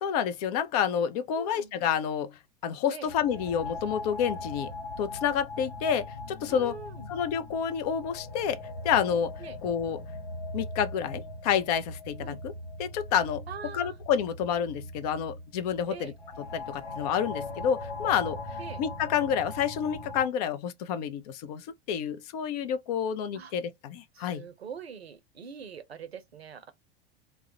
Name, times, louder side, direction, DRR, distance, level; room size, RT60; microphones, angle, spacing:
voice 1, 0.0-2.3 2.6-6.7 7.1-8.6 8.8-9.3 9.6-10.0 10.5-12.5 12.8-13.4 13.7-16.1 16.4-24.5, left 8 dB, 40° left, 0.4 m, -29 dB
voice 2, 1.3-1.8 2.9-3.1 6.5-7.1 9.4-9.6 12.2-12.4 13.5-14.0 15.9-16.1 18.6-18.8 23.3-23.5 24.1-26.7, right 6 dB, 80° right, 0.6 m, -43 dB
sound 1, 3.1-20.3, left 2 dB, 80° left, 0.9 m, -40 dB
2.3 x 2.0 x 2.7 m
figure-of-eight pair, 85°, 31 cm